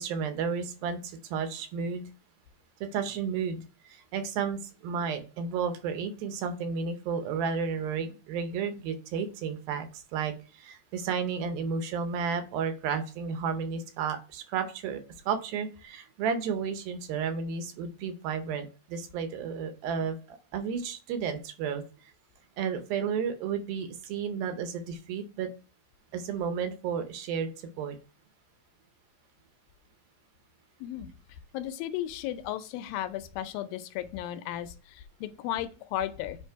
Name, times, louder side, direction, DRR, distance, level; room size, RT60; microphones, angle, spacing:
voice 1, 0.0-2.1 2.8-21.8 22.6-25.5 26.1-27.5 27.8-28.0, right 6 dB, 90° right, 8 dB, 2.6 m, -32 dB
voice 2, 31.5-36.4, left 12 dB, 85° left, 11 dB, 2.4 m, -35 dB
8.4 x 2.9 x 4.5 m, 0.35 s
omnidirectional pair, 4.1 m